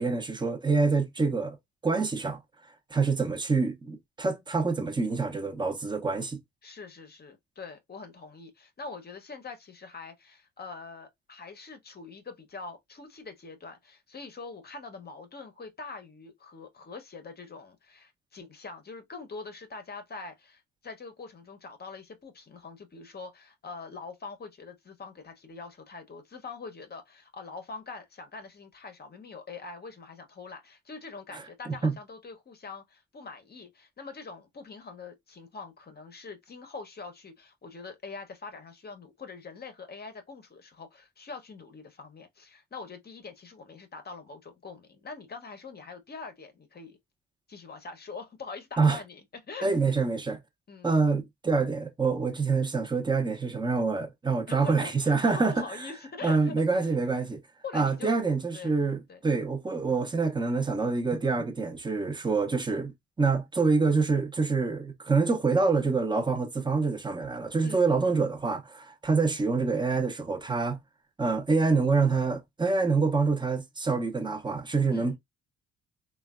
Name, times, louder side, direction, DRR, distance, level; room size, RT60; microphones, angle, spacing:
voice 1, 0.0-1.6 1.8-2.4 2.9-6.4 31.3-31.4 31.7-31.9 48.8-49.0 49.6-50.4 50.8-55.6 56.2-57.4 57.7-70.8 71.2-75.2, right 4 dB, 15° right, 0.6 m, -26 dB
voice 2, 6.6-47.0 47.5-49.7 50.7-50.9 54.5-56.9 57.6-58.2 58.5-58.8 59.1-59.2 59.9-60.0 67.6-68.0 74.9-75.2, left 4 dB, 35° left, 0.7 m, -44 dB
3.2 x 2.2 x 2.3 m
cardioid pair, 90°, 30 cm